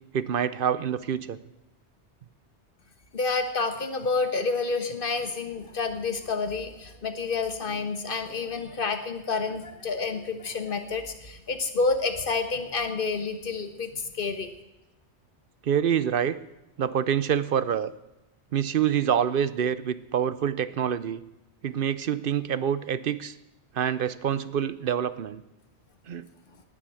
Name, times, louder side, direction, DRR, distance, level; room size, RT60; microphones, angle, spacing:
voice 1, 0.1-1.4 15.6-16.4 16.8-17.9 18.5-21.2 21.6-23.3 23.7-25.4 26.1-26.3, right 8 dB, 55° right, 16 dB, 0.8 m, -26 dB
voice 2, 3.1-14.5, left 4 dB, 50° left, 8 dB, 1.5 m, -29 dB
19.0 x 7.5 x 7.7 m, 0.95 s
omnidirectional pair, 1.2 m